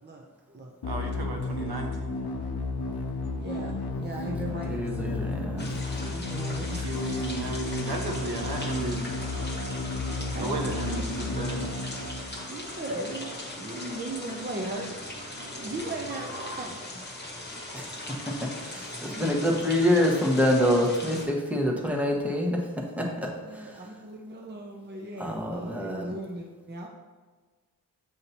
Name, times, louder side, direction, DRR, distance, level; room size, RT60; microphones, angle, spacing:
voice 1, 0.0-0.8 3.3-5.3 6.0-6.8 10.0-10.6 11.2-11.7 12.5-15.0 15.4-16.9 23.4-26.9, right 1 dB, 30° right, 1 dB, 0.6 m, -38 dB
sound 1, 0.8-12.8, left 3 dB, 85° left, 0.6 m, -33 dB
voice 2, 0.8-2.2 6.5-9.1 10.4-11.6, right 2 dB, 85° right, 2 dB, 0.9 m, -34 dB
voice 3, 4.6-5.8 17.7-18.1 18.4-23.8 25.2-26.1, left 1 dB, 5° right, -1 dB, 1.1 m, -27 dB
sound 2, 5.6-21.2, left 1 dB, 25° left, 1.3 m, -39 dB
sound 3, 8.1-16.6, right 3 dB, 65° right, 1.5 m, -46 dB
8.0 x 2.8 x 4.2 m, 1.4 s
wide cardioid pair, 65°, 37 cm